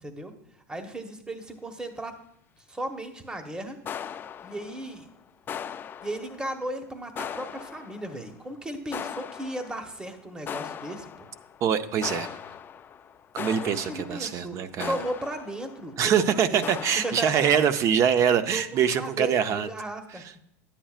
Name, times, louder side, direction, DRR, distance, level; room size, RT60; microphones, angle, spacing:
voice 1, 0.0-2.1 2.7-3.8 4.4-5.1 6.0-11.3 13.6-17.6 18.5-20.4, right 1 dB, 10° right, 6 dB, 1.0 m, -36 dB
sound 1, 3.9-5.1 5.5-6.7 7.2-8.3 8.9-10.1 10.5-11.6 12.0-16.0 16.6-17.3, left 8 dB, 25° left, 0.3 m, -39 dB
voice 2, 11.6-12.4 13.3-14.9 16.0-19.7, right 8 dB, 40° right, 11 dB, 0.6 m, -24 dB
10.0 x 8.8 x 2.4 m, 0.77 s
supercardioid pair, 110°, 8 cm